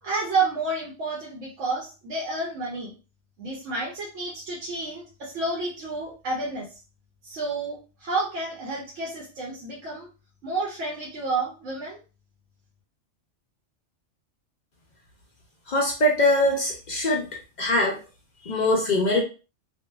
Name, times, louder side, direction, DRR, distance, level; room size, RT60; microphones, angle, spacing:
voice 1, 0.0-2.9 3.4-6.6 7.2-10.1 10.4-12.0, right 3 dB, 90° right, -4 dB, 1.0 m, -30 dB
voice 2, 15.7-17.2 17.6-18.0 18.5-19.2, left 1 dB, 55° left, 0 dB, 0.5 m, -22 dB
2.6 x 2.2 x 2.2 m, 0.34 s
omnidirectional pair, 1.2 m